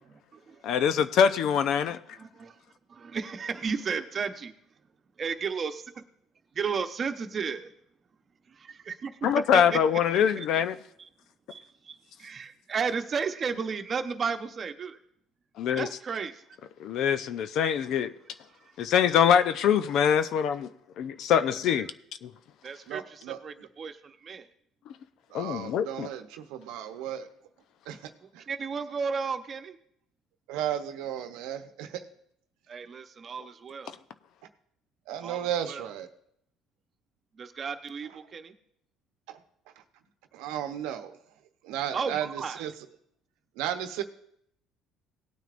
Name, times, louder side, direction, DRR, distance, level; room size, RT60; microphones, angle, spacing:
voice 1, 0.6-2.0 9.2-10.8 15.6-15.9 16.8-18.1 18.8-20.7 21.0-21.9 22.2-22.3 25.3-26.1, left 8 dB, 65° left, 0.6 m, -24 dB
voice 2, 2.2-2.5 2.9-4.5 5.2-6.0 6.6-7.7 8.6-9.1 9.5-9.8 10.1-10.4 11.5-15.0 15.7-16.4 17.7-17.9 21.7-21.9 22.6-24.4 28.5-29.7 32.7-33.9 35.2-35.8 37.4-38.5 41.9-42.6, right 5 dB, 40° right, 0.9 m, -33 dB
voice 3, 22.9-23.7 25.3-27.3 27.9-28.0 28.3-28.4 30.5-32.1 35.1-36.1 39.3-39.4 40.3-41.2 41.6-42.7 43.6-44.0, right 10 dB, 80° right, 0.9 m, -34 dB
18.0 x 9.1 x 2.6 m
supercardioid pair, 85°, 0 cm